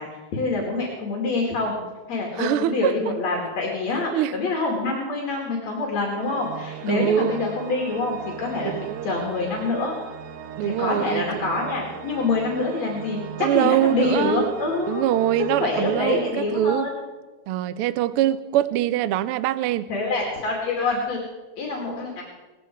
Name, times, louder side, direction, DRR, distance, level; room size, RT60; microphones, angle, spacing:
voice 1, 0.0-1.8 2.1-8.7 9.0-10.0 10.6-15.1 15.6-17.0 19.9-21.2 21.6-22.2, left 3 dB, 65° left, -1 dB, 3.6 m, -26 dB
voice 2, 2.4-2.9 4.1-4.4 6.9-7.4 8.6-9.1 10.6-11.4 13.4-14.5 14.9-16.9 17.5-19.9, right 12 dB, 90° right, 14 dB, 1.2 m, -23 dB
Organ, 6.2-17.1, right 8 dB, 70° right, 1.8 m, -39 dB
18.5 x 15.0 x 4.7 m, 1.2 s
omnidirectional pair, 3.3 m